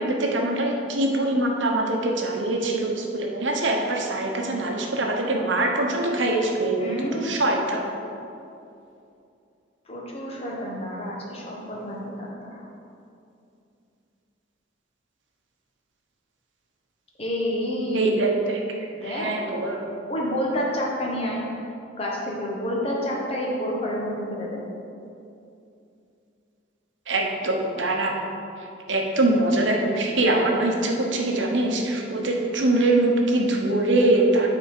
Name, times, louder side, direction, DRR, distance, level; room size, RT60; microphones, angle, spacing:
voice 1, 0.0-7.8 17.9-19.8 27.1-28.2 28.9-34.5, right 2 dB, 70° right, 1 dB, 1.0 m, -23 dB
voice 2, 6.8-7.5 9.9-12.6 17.2-18.1 19.0-19.3 20.1-21.7 22.0-24.6, equal, 30° left, -3 dB, 1.3 m, -29 dB
10.0 x 4.2 x 4.9 m, 2.6 s
head